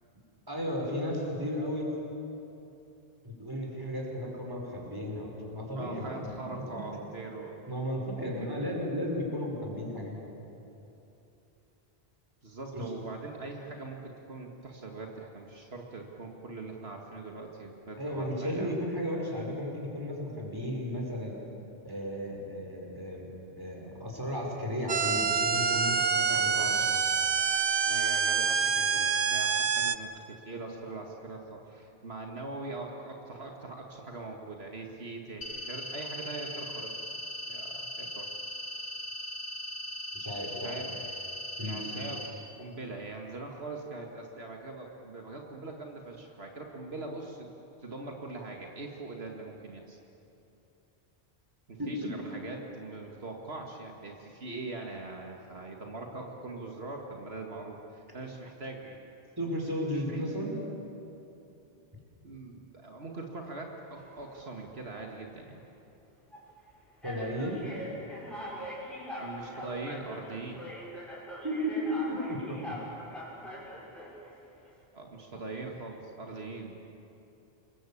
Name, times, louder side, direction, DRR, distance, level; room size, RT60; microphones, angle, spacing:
voice 1, 0.5-1.9 3.2-6.8 7.7-10.3 12.7-12.8 18.0-21.3 21.8-26.8 40.1-40.8 41.6-41.8 51.8-52.1 59.4-60.6 67.0-67.6 71.4-72.7, equal, 20° right, -1 dB, 5.3 m, -34 dB
voice 2, 5.7-7.7 8.1-8.7 12.4-18.7 26.3-27.1 27.9-37.2 37.5-38.3 40.6-41.0 41.6-47.5 47.8-50.0 51.7-59.1 59.9-60.2 62.2-65.6 69.2-70.7 74.9-76.8, right 3 dB, 75° right, 1 dB, 2.3 m, -42 dB
sound 1, 24.9-30.0, right 6 dB, 45° right, 0.8 m, -26 dB
sound 2, 35.4-42.3, left 1 dB, 75° left, 2.8 m, -39 dB
sound 3, 64.0-64.5 65.3-65.5 66.3-66.4 67.0-74.3, equal, ahead, 6.1 m, -42 dB
27.5 x 22.0 x 8.6 m, 2.9 s
omnidirectional pair, 1.1 m